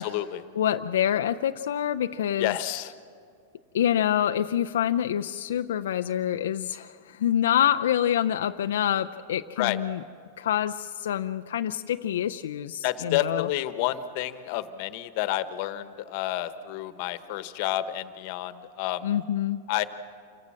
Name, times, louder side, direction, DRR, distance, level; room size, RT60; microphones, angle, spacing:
voice 1, 0.0-0.4 2.4-2.9 9.6-9.8 12.8-19.1 19.7-19.8, left 14 dB, 50° left, 12 dB, 1.2 m, -29 dB
voice 2, 0.6-2.5 3.7-10.0 10.4-13.5 19.0-19.6, left 10 dB, 85° left, 8 dB, 0.5 m, -26 dB
27.5 x 17.0 x 7.5 m, 2.3 s
supercardioid pair, 145°, 0 cm